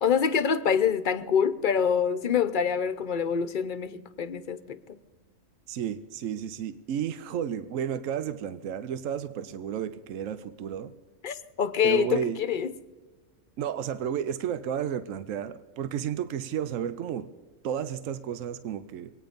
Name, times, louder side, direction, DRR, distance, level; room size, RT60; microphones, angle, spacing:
voice 1, 0.0-4.8 11.2-12.7, left 7 dB, 45° left, 0.8 m, -26 dB
voice 2, 5.7-10.9 11.8-12.4 13.6-17.3 17.6-19.1, right 9 dB, 80° right, 1.0 m, -32 dB
24.0 x 9.3 x 5.2 m
omnidirectional pair, 1.3 m